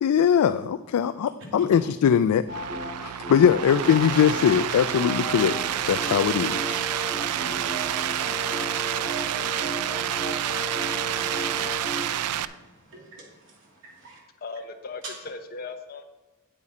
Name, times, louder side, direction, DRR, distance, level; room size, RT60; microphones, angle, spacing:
voice 1, 0.0-2.4 3.0-5.6 5.9-6.8, left 8 dB, 85° left, 11 dB, 0.3 m, -21 dB
sound 1, 2.5-2.9 3.2-12.0, equal, 45° right, 3.3 m, -35 dB
sound 2, 2.5-12.5, right 11 dB, 90° right, 0.4 m, -29 dB
voice 2, 7.4-14.2, right 1 dB, 60° right, -2 dB, 2.4 m, -53 dB
voice 3, 14.4-16.0, left 4 dB, 45° left, 5 dB, 0.8 m, -37 dB
8.6 x 8.5 x 4.2 m, 1.1 s
head